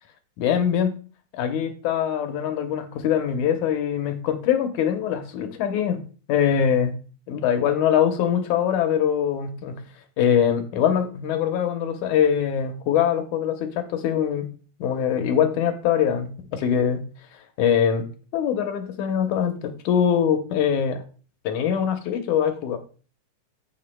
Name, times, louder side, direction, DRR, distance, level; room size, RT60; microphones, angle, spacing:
voice 1, 0.4-1.0 1.3-6.0 6.3-6.9 7.3-9.8 10.2-14.5 14.8-17.0 17.6-18.1 18.3-21.0 21.4-22.8, left 8 dB, 75° left, 6 dB, 2.3 m, -23 dB
15.5 x 5.7 x 2.2 m, 0.38 s
omnidirectional pair, 3.6 m